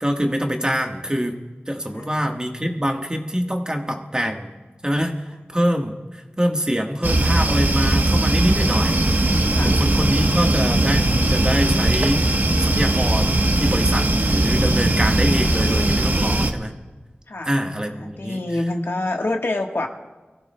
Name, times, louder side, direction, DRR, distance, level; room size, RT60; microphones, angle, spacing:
voice 1, 0.0-1.4 1.7-4.5 4.8-5.1 5.5-9.1 9.6-16.8 17.4-18.4, equal, 20° right, 3 dB, 1.4 m, -24 dB
sound 1, 7.0-16.5, right 1 dB, 50° right, 1.1 m, -19 dB
voice 2, 18.0-19.9, left 2 dB, 70° left, 2 dB, 1.3 m, -26 dB
26.0 x 15.0 x 2.2 m, 1.2 s
wide cardioid pair, 55°, 4 cm